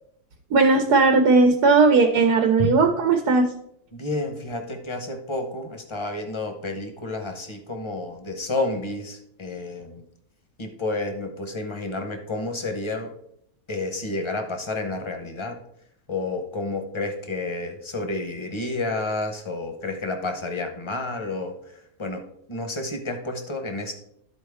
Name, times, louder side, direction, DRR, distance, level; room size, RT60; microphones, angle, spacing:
voice 1, 0.5-3.5, right 3 dB, 80° right, 4 dB, 1.3 m, -17 dB
voice 2, 3.9-10.0 10.6-13.1 13.7-15.5 16.1-21.5 22.0-22.2 22.5-23.9, left 2 dB, 25° left, 4 dB, 0.7 m, -30 dB
12.0 x 4.3 x 3.5 m, 0.74 s
omnidirectional pair, 1.7 m